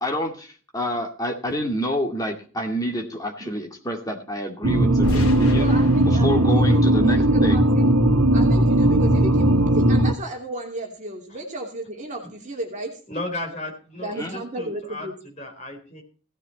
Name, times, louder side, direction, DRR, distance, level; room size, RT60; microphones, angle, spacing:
voice 1, 0.0-5.7 6.2-7.6 14.2-14.4, equal, 15° left, 2 dB, 2.3 m, -28 dB
sound 1, 4.6-10.1, right 1 dB, 90° right, 1.4 m, -18 dB
sound 2, 5.0-8.0, left 1 dB, 80° left, 2.8 m, -34 dB
voice 2, 5.5-7.9 8.3-9.5 9.7-12.9 14.0-15.1, right 1 dB, 35° right, 1 dB, 2.9 m, -33 dB
voice 3, 13.1-15.1 15.4-16.0, left 2 dB, 30° left, 3 dB, 4.2 m, -34 dB
16.5 x 9.9 x 4.2 m, 0.40 s
head